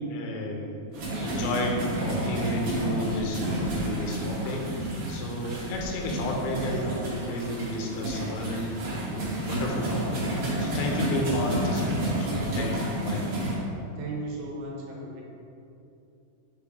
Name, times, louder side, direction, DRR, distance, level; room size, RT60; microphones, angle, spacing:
voice 1, 0.1-0.7 1.2-4.7 5.1-8.7 9.4-10.1 10.6-13.3, left 1 dB, 85° left, 0 dB, 3.3 m, -31 dB
sound 1, 0.9-11.7, left 1 dB, 70° left, 2.0 m, -45 dB
sound 2, 0.9-13.6, right 1 dB, 60° right, 2.3 m, -30 dB
voice 2, 14.0-15.2, right 2 dB, 80° right, -2 dB, 3.1 m, -37 dB
7.1 x 4.8 x 3.6 m, 2.6 s
omnidirectional pair, 5.5 m